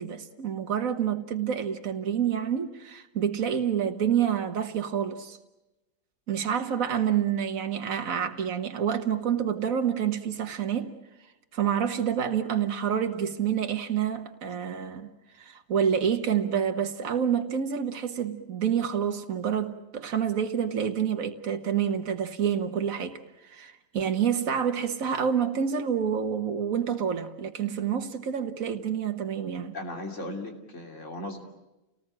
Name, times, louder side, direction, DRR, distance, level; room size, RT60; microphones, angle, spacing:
voice 1, 0.0-5.4 6.3-11.0 11.5-15.1 15.4-29.8, right 8 dB, 80° right, 1.7 m, -28 dB
voice 2, 29.7-31.4, left 1 dB, 60° left, 3.4 m, -37 dB
30.0 x 19.0 x 8.8 m
omnidirectional pair, 1.4 m